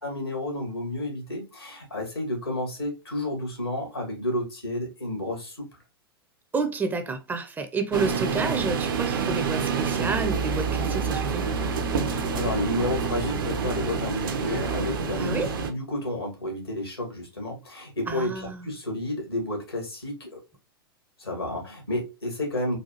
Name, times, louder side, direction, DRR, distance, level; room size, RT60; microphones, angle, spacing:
voice 1, 0.0-5.7 12.1-20.4 21.2-22.8, left 1 dB, 85° left, 1.7 m, -31 dB
voice 2, 6.5-11.5 15.2-15.5 18.1-18.7, right 4 dB, 15° right, 0.5 m, -30 dB
sound 1, 7.9-15.7, right 5 dB, 60° right, 0.6 m, -27 dB
4.0 x 2.4 x 2.8 m
figure-of-eight pair, 95°, 13 cm